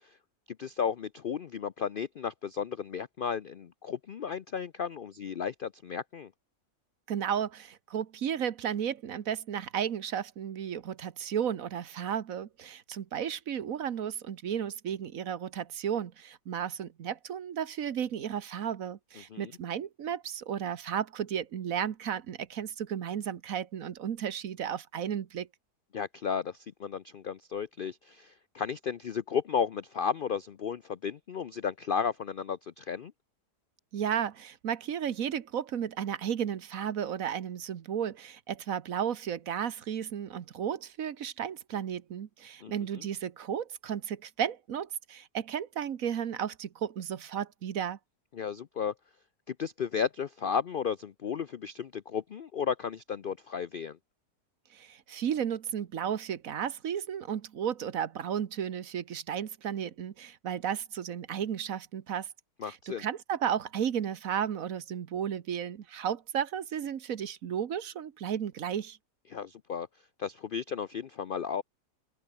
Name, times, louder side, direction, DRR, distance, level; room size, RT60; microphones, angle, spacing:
voice 1, 0.6-6.3 19.3-19.5 25.9-33.1 42.6-42.7 48.3-48.9 49.5-54.0 62.6-63.1 69.3-69.9 70.2-71.6, left 7 dB, 85° left, 0.4 m, -34 dB
voice 2, 7.1-25.5 33.9-48.0 54.7-62.3 62.6-69.0, right 8 dB, 60° right, 1.4 m, -34 dB
open air
omnidirectional pair, 1.7 m